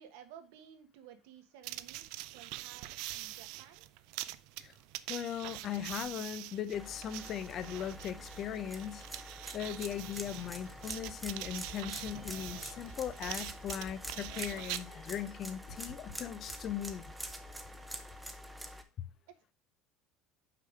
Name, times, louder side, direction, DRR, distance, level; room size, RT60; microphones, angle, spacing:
voice 1, 0.0-2.1 2.3-3.9, right 9 dB, 80° right, 1.2 m, -55 dB
sound 1, 1.6-14.8, right 16 dB, 65° right, 0.4 m, -44 dB
voice 2, 5.1-9.1 9.5-17.1, left 9 dB, 35° left, 0.5 m, -39 dB
sound 2, 6.7-18.8, equal, 5° right, 0.7 m, -46 dB
sound 3, 10.0-15.4 15.7-16.1 16.5-17.9, left 1 dB, 75° left, 2.6 m, -52 dB
5.8 x 4.9 x 4.9 m
cardioid pair, 150°, 0 cm